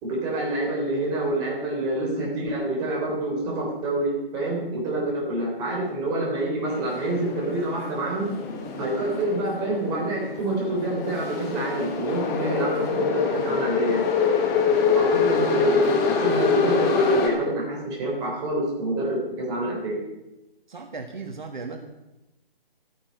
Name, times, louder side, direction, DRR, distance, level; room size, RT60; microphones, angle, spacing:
voice 1, 0.0-8.3 8.8-14.0 14.9-20.0, right 1 dB, 15° right, -2 dB, 3.5 m, -27 dB
sound 1, 6.6-17.3, left 5 dB, 10° left, 1.2 m, -25 dB
voice 2, 20.7-21.9, right 4 dB, 50° right, 4 dB, 1.8 m, -36 dB
14.5 x 14.0 x 5.4 m, 0.97 s
figure-of-eight pair, 150°, 30 cm